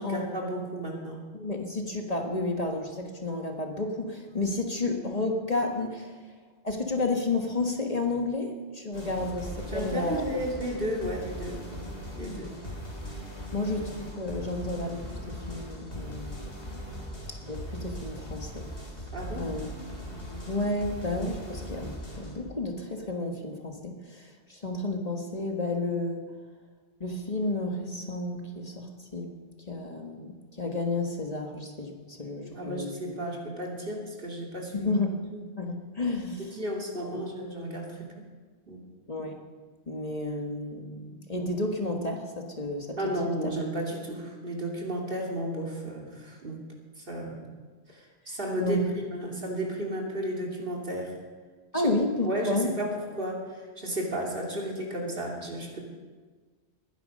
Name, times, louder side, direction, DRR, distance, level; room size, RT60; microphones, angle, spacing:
voice 1, 0.0-1.2 9.7-12.5 19.1-19.5 32.5-34.9 35.3-35.4 36.4-38.1 38.7-38.8 43.0-46.6 47.0-47.4 47.9-51.1 51.7-51.9 52.2-55.8, right 1 dB, 55° right, -1 dB, 3.0 m, -33 dB
voice 2, 1.3-6.1 6.6-10.2 12.2-12.5 13.5-16.4 17.3-18.7 19.4-19.7 20.5-26.2 27.0-29.3 29.7-32.9 34.7-35.2 35.6-36.5 37.0-37.1 39.1-39.4 39.9-43.5 48.6-48.9 51.7-52.7, left 2 dB, 35° left, 2 dB, 1.6 m, -31 dB
sound 1, 8.9-22.4, equal, 85° left, 3.7 m, -39 dB
20.5 x 10.5 x 5.4 m, 1.4 s
omnidirectional pair, 1.1 m